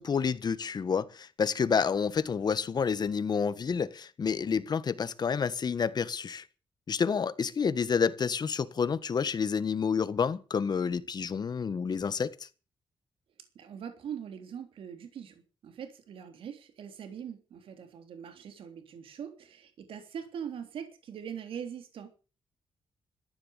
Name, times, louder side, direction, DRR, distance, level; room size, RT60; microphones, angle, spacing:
voice 1, 0.0-6.4 6.9-12.5, left 6 dB, 50° left, 1.5 m, -29 dB
voice 2, 13.5-22.1, right 8 dB, 80° right, 3.4 m, -42 dB
14.5 x 10.5 x 8.4 m
cardioid pair, 85°, 9 cm